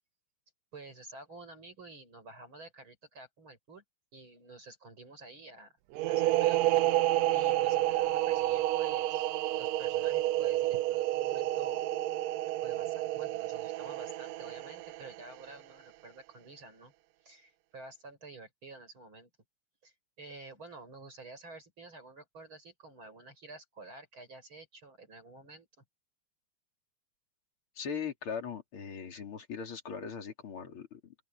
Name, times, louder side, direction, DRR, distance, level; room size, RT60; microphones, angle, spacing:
voice 1, 0.7-3.8 4.1-5.8 6.0-6.6 7.3-9.3 9.6-11.8 12.6-16.9 17.2-19.3 19.8-25.7, right 3 dB, 40° right, 6.0 m, -50 dB
sound 1, 5.9-15.5, right 15 dB, 80° right, 1.6 m, -30 dB
voice 2, 27.8-31.1, left 6 dB, 45° left, 3.8 m, -39 dB
open air
omnidirectional pair, 3.6 m